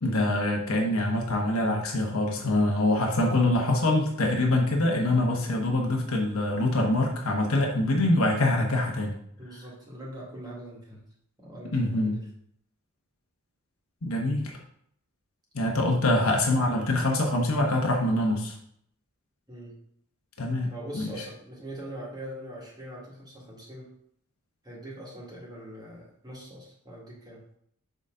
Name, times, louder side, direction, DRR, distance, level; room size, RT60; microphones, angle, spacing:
voice 1, 0.0-9.2 11.7-12.2 14.0-14.5 15.5-18.6 20.4-21.1, left 1 dB, 70° left, 0 dB, 1.2 m, -25 dB
voice 2, 9.4-11.0 11.4-12.2 16.1-16.5 19.5-19.8 20.7-23.9 24.6-27.4, right 1 dB, 20° right, -6 dB, 2.0 m, -42 dB
6.6 x 5.2 x 3.8 m, 0.68 s
head